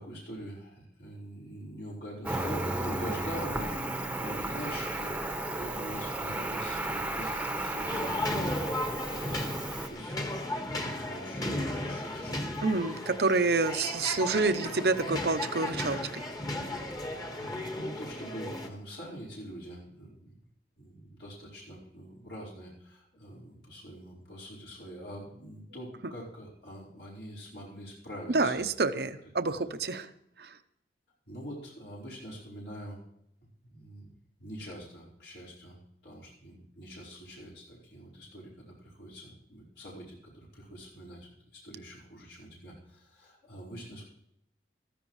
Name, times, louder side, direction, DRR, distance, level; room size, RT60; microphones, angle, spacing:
voice 1, 0.0-10.2 10.5-10.7 11.1-12.7 17.4-20.4 20.8-28.6 29.4-29.5 31.3-33.0 33.4-34.1 34.4-44.1, equal, 70° left, -5 dB, 4.7 m, -44 dB
Cricket, 2.2-9.9, right 1 dB, 10° right, 1.0 m, -34 dB
sound 1, 7.9-18.7, left 1 dB, 20° left, 1.6 m, -35 dB
voice 2, 12.6-16.2 28.3-30.1 30.4-30.5, right 3 dB, 65° right, 10 dB, 0.8 m, -28 dB
15.0 x 14.5 x 3.2 m, 0.77 s
head